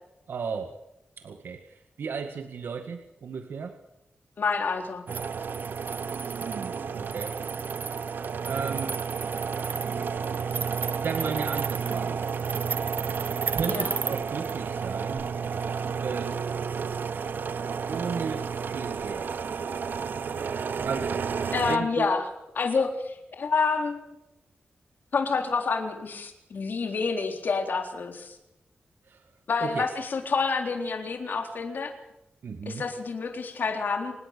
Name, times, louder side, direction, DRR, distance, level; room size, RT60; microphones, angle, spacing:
voice 1, 0.3-0.8 1.2-3.8 6.4-7.4 8.4-9.0 11.0-12.2 13.5-15.2 16.0-16.5 17.9-19.5 20.8-21.3 21.7-22.1 29.0-29.2 29.6-29.8 32.4-32.8, right 5 dB, 80° right, 6 dB, 1.8 m, -34 dB
voice 2, 4.4-5.0 13.6-14.0 21.5-22.3 22.5-24.2 25.1-28.3 29.5-31.9 32.7-34.1, left 4 dB, 60° left, 4 dB, 3.9 m, -28 dB
sound 1, 5.1-21.8, right 6 dB, 60° right, 1.0 m, -31 dB
26.0 x 20.0 x 6.8 m, 0.89 s
wide cardioid pair, 130°, 4 cm